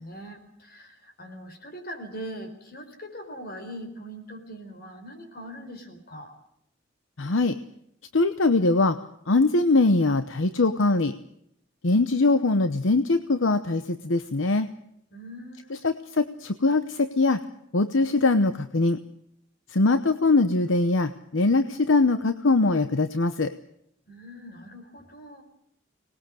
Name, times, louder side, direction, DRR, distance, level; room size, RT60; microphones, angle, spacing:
voice 1, 0.0-6.3 15.1-15.9 24.1-25.4, equal, 55° left, 6 dB, 4.5 m, -41 dB
voice 2, 7.2-7.6 8.1-9.0 9.3-11.1 11.8-14.7 15.8-17.4 17.7-19.0 19.7-23.5, left 3 dB, 75° left, 10 dB, 0.9 m, -22 dB
25.0 x 19.5 x 6.4 m, 0.74 s
head